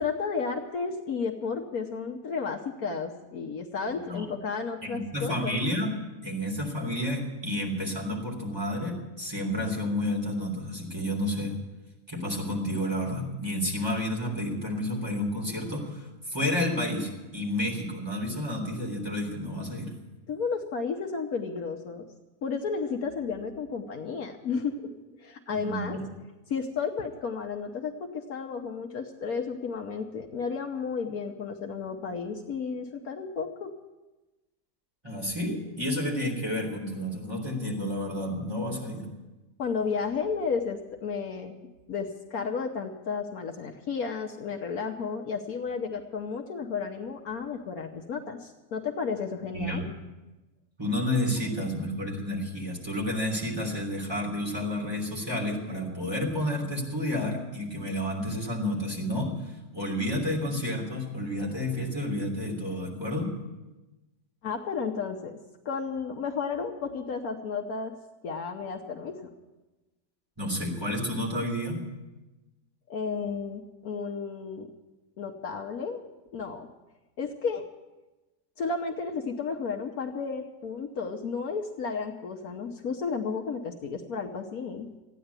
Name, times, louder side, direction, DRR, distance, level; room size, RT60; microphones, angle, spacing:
voice 1, 0.0-5.6 20.3-22.0 22.4-24.9 25.2-26.0 26.5-33.7 39.6-41.5 41.9-49.9 64.4-65.4 65.6-67.9 68.2-69.3 72.9-74.7 75.2-76.0 76.3-76.7 77.2-77.7 78.6-84.9, left 5 dB, 65° left, 3 dB, 1.4 m, -32 dB
voice 2, 3.9-4.3 4.8-6.0 6.2-11.6 12.1-19.9 25.5-26.0 35.0-39.1 49.5-49.9 50.8-63.3 70.4-71.8, left 1 dB, 15° right, -2 dB, 3.4 m, -30 dB
14.5 x 10.0 x 8.1 m, 1.1 s
omnidirectional pair, 1.7 m